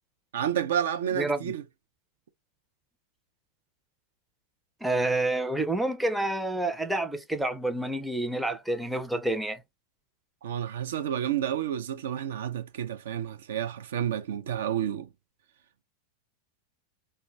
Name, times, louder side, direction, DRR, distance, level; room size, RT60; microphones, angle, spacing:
voice 1, 0.3-1.6 10.4-15.1, right 10 dB, 60° right, 0.5 m, -30 dB
voice 2, 1.2-1.5 4.8-9.6, right 2 dB, 5° right, 0.5 m, -28 dB
4.3 x 2.2 x 3.0 m
figure-of-eight pair, 90°, 0 cm